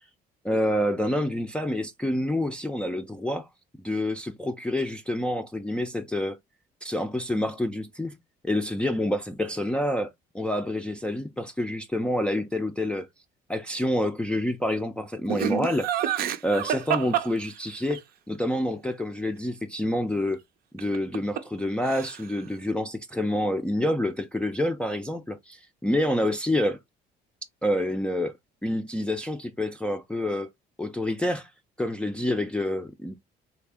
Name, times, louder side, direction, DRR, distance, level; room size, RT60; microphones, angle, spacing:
voice 1, 0.4-3.5 3.8-6.4 6.8-8.2 8.4-13.1 13.5-16.1 16.4-18.0 18.3-20.4 20.7-26.8 27.6-28.3 28.6-30.5 30.8-31.5 31.8-33.2, left 1 dB, 5° left, 0.4 m, -27 dB
Laughter, 15.3-18.0 20.8-21.6 21.8-22.4, right 10 dB, 65° right, 0.5 m, -28 dB
3.5 x 2.1 x 3.4 m
cardioid pair, 110°, 17 cm